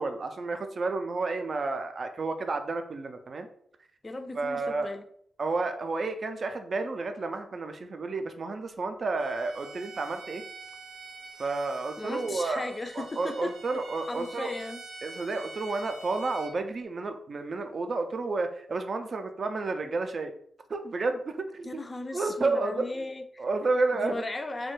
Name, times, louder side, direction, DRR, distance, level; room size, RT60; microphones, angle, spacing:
voice 1, 0.0-3.5 4.4-4.9 5.4-10.4 11.4-12.7 12.9-14.5 15.0-20.3 20.7-21.8 22.1-23.1 23.4-24.2, right 3 dB, 55° right, 7 dB, 0.3 m, -31 dB
voice 2, 4.0-5.0 12.0-13.5 14.1-14.8 21.6-23.5 23.9-24.7, left 2 dB, 30° left, 7 dB, 0.3 m, -36 dB
Bowed string instrument, 9.2-16.6, right 3 dB, 85° right, 0.6 m, -46 dB
3.1 x 2.2 x 3.0 m, 0.64 s
cardioid pair, 75°, 0 cm